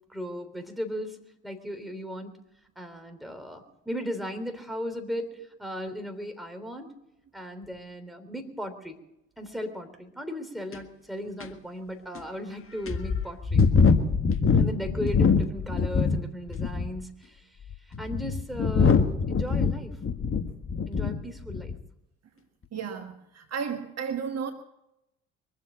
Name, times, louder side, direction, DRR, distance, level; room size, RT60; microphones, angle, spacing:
voice 1, 0.1-1.2 1.4-2.3 2.7-6.9 7.3-9.0 9.4-13.6 14.5-17.4 18.0-20.0 20.9-21.8, equal, ahead, 3.3 m, -36 dB
sound 1, 10.7-10.8 11.4-11.5 12.1-12.2 12.9-16.2 16.5-17.0 17.7-21.2 21.5-21.8, left 5 dB, 35° left, 1.7 m, -23 dB
voice 2, 22.7-24.5, right 6 dB, 45° right, 1.6 m, -33 dB
23.5 x 7.8 x 7.3 m
hypercardioid pair, 55°, 36 cm